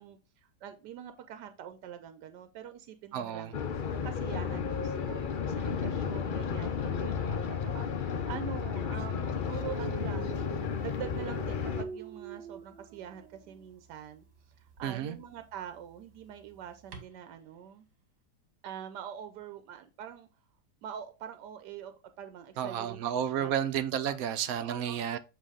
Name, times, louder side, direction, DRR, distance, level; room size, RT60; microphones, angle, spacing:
voice 1, 0.0-3.6 3.9-10.4 10.8-14.2 14.6-17.9 18.6-20.3 20.8-23.5 24.6-25.2, right 9 dB, 85° right, 1.2 m, -44 dB
voice 2, 3.1-3.6 14.8-15.2 22.6-25.2, right 9 dB, 70° right, 0.9 m, -32 dB
sound 1, 3.5-11.8, left 6 dB, 80° left, 0.4 m, -33 dB
Dog, 9.7-13.6 14.7-14.9 16.9-17.1, right 7 dB, 45° right, 1.4 m, -44 dB
7.6 x 3.0 x 4.8 m
omnidirectional pair, 1.8 m